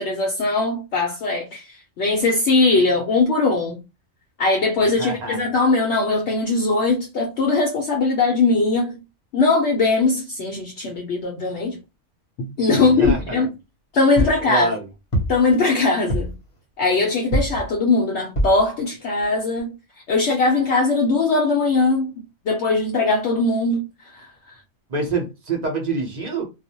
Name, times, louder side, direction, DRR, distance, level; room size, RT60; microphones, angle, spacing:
voice 1, 0.0-3.8 4.4-9.0 9.3-11.8 12.4-13.5 13.9-14.7 15.3-16.3 16.8-19.7 20.1-22.1 22.5-23.8 24.1-24.2, left 3 dB, 65° left, 0.8 m, -20 dB
voice 2, 5.0-5.4 12.7-13.5 14.2-14.9 24.9-26.4, right 3 dB, 40° right, 0.7 m, -27 dB
sound 1, 13.0-13.3 14.2-14.5 15.1-15.5 16.1-16.4 17.3-17.7 18.4-18.6 19.2-19.3 19.6-19.7, equal, 35° left, 0.6 m, -23 dB
2.4 x 2.0 x 2.7 m
omnidirectional pair, 1.4 m